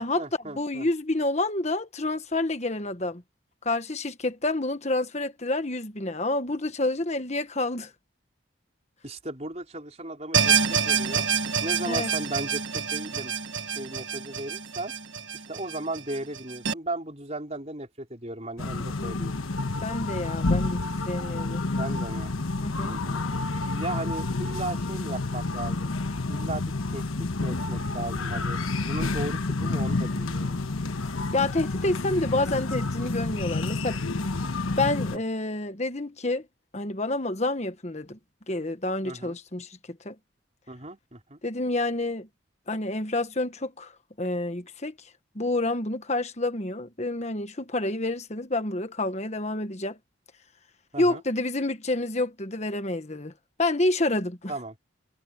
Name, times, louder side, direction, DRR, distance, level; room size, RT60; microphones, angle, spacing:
voice 1, 0.0-0.9 9.0-11.3 11.6-13.3 13.7-14.9 15.3-19.3 21.8-22.3 22.8-23.2 23.7-25.9 26.3-28.6 28.9-30.6 39.0-39.4 40.7-41.4 50.9-51.2 54.5-54.7, right 2 dB, 35° right, 4.8 m, -36 dB
voice 2, 0.5-3.2 3.6-7.9 11.8-12.1 19.8-21.6 22.6-23.0 31.3-34.0 34.8-36.4 36.7-38.2 38.5-40.1 41.4-42.3 42.7-43.9 44.2-44.9 45.3-50.0 51.0-53.3 53.6-54.5, left 2 dB, 35° left, 1.4 m, -28 dB
sound 1, 10.3-16.7, right 6 dB, 65° right, 1.6 m, -27 dB
sound 2, 18.6-35.2, left 3 dB, 90° left, 1.3 m, -29 dB
head